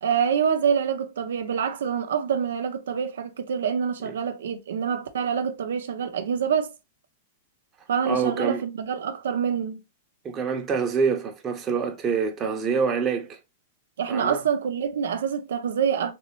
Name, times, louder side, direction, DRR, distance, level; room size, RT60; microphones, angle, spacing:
voice 1, 0.0-6.7 7.9-9.8 14.0-16.1, right 7 dB, 85° right, 0.5 m, -26 dB
voice 2, 8.0-8.6 10.2-13.4 14.1-14.4, right 5 dB, 25° right, 0.8 m, -26 dB
3.4 x 2.9 x 3.0 m
hypercardioid pair, 135°, 0 cm